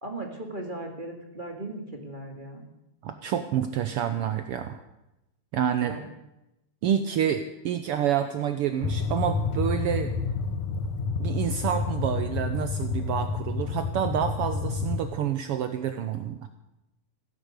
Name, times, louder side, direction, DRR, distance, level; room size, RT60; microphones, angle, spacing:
voice 1, 0.0-2.7 5.8-6.1, right 2 dB, 20° right, 2 dB, 1.8 m, -37 dB
voice 2, 3.0-4.8 5.5-5.9 6.8-10.1 11.2-16.5, right 9 dB, 80° right, 9 dB, 1.3 m, -28 dB
sound 1, 8.8-15.0, left 4 dB, 80° left, 2.5 m, -29 dB
16.5 x 10.5 x 8.3 m, 0.91 s
omnidirectional pair, 3.5 m